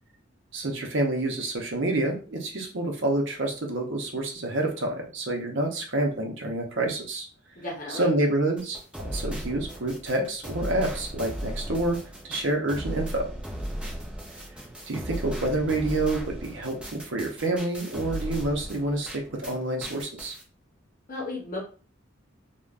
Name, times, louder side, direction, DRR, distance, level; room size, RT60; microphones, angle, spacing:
voice 1, 0.5-7.3 7.9-12.0 12.3-13.3 14.9-20.3, right 2 dB, 65° right, 2 dB, 0.6 m, -28 dB
voice 2, 7.6-8.1 21.1-21.6, left 2 dB, 45° left, -4 dB, 0.8 m, -34 dB
sound 1, 8.6-19.5 19.8-20.4, equal, 5° right, 0.5 m, -36 dB
3.3 x 2.1 x 2.4 m, 0.38 s
head